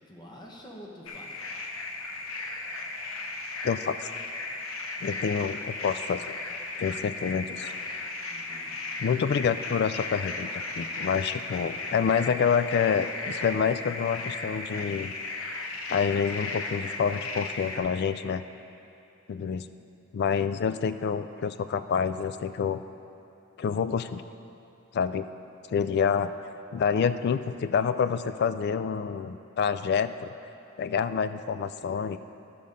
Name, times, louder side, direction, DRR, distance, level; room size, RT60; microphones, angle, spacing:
voice 1, 0.0-1.5 8.2-8.9, equal, 20° left, -2 dB, 1.1 m, -48 dB
sound 1, 1.1-17.8, left 3 dB, 70° left, 0.8 m, -36 dB
voice 2, 3.6-4.0 5.0-6.3 6.8-7.7 9.0-15.1 15.9-18.4 19.3-19.7 20.1-22.8 23.6-24.2 24.9-25.3 25.7-26.3 26.7-30.3 30.8-32.2, left 6 dB, 50° left, 12 dB, 0.3 m, -27 dB
12.5 x 5.1 x 5.4 m, 2.7 s
head